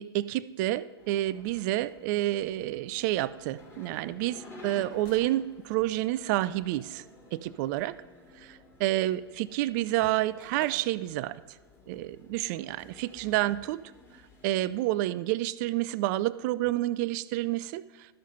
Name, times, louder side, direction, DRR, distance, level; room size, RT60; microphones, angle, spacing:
voice 1, 0.0-7.0 7.3-8.0 8.4-11.4 11.9-13.8 14.4-17.8, right 15 dB, 45° right, 17 dB, 0.4 m, -29 dB
sound 1, 1.0-14.8, left 2 dB, 20° left, 2.5 m, -53 dB
sound 2, 10.6-11.3 11.8-11.9, left 2 dB, 60° left, 4.4 m, -57 dB
12.5 x 6.4 x 5.7 m, 1.2 s
hypercardioid pair, 100°, 13 cm